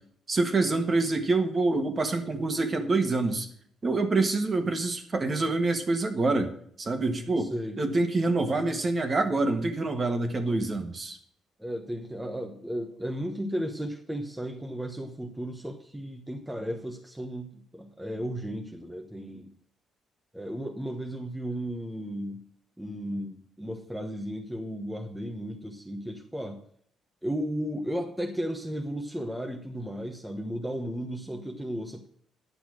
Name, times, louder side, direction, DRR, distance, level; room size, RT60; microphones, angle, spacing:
voice 1, 0.3-3.5 3.8-11.2, right 3 dB, 30° right, 7 dB, 1.5 m, -26 dB
voice 2, 7.4-7.8 11.6-19.5 20.3-22.4 22.8-26.6 27.2-32.1, equal, 5° right, 3 dB, 1.1 m, -34 dB
10.5 x 6.9 x 6.3 m, 0.62 s
cardioid pair, 140°, 0 cm